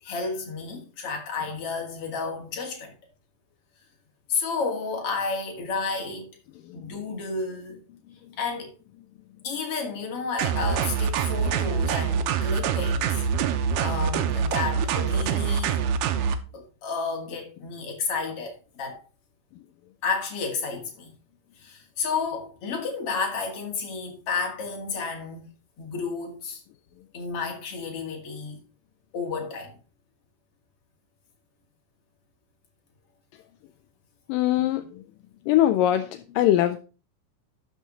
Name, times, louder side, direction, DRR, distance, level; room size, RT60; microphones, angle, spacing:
voice 1, 0.0-3.0 4.3-6.3 6.7-7.8 8.4-8.7 9.4-15.8 16.5-19.0 20.0-21.1 21.6-25.5 25.8-26.6 27.1-28.6 29.1-29.8, left 4 dB, 45° left, 2.8 m, -31 dB
sound 1, 10.4-16.4, right 7 dB, 75° right, 2.3 m, -25 dB
voice 2, 34.3-34.8 35.5-36.1 36.4-36.8, left 12 dB, 80° left, 2.2 m, -21 dB
12.0 x 6.4 x 3.8 m
omnidirectional pair, 4.1 m